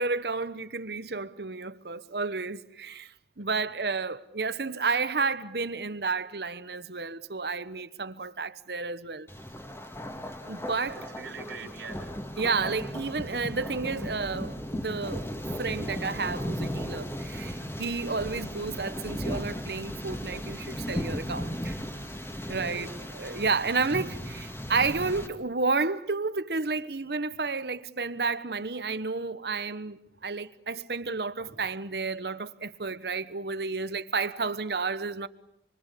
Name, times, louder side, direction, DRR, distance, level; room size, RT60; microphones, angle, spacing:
voice 1, 0.0-9.3 10.5-11.0 12.4-15.3 15.6-21.8 22.5-22.9 23.1-35.3, right 4 dB, 65° right, 1.2 m, -31 dB
voice 2, 3.4-3.7 10.9-12.1 21.9-23.3 30.1-30.2 31.5-31.6, right 3 dB, 85° right, 4.0 m, -46 dB
Thunder, 9.3-25.3, equal, 15° left, 2.0 m, -36 dB
27.5 x 24.0 x 8.5 m
head